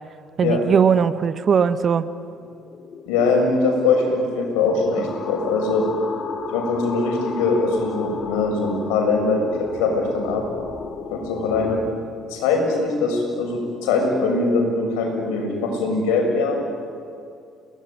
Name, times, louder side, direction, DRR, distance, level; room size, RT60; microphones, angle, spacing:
voice 1, 0.4-2.1, right 7 dB, 45° right, 13 dB, 1.2 m, -19 dB
sound 1, 2.3-11.9, left 5 dB, 45° left, 2.9 m, -34 dB
voice 2, 3.1-5.9 6.5-10.4 11.1-11.8 12.3-16.6, left 3 dB, 70° left, 2 dB, 6.9 m, -22 dB
30.0 x 19.0 x 10.0 m, 2.4 s
figure-of-eight pair, 50°, 0 cm